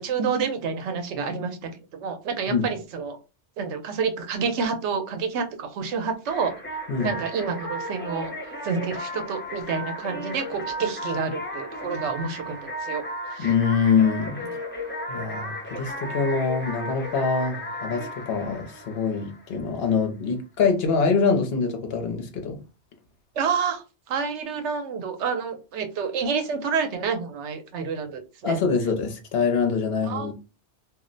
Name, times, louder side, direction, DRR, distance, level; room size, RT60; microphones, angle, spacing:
voice 1, 0.0-3.2 3.6-6.5 7.0-8.3 8.6-13.0 13.3-13.5 23.4-28.6 30.0-30.3, right 5 dB, 90° right, 0.9 m, -28 dB
sound 1, 6.2-19.7, equal, 15° left, 0.6 m, -35 dB
voice 2, 13.4-14.4 15.1-22.6 28.4-30.3, left 5 dB, 65° left, 0.9 m, -24 dB
2.4 x 2.1 x 3.8 m
omnidirectional pair, 1.1 m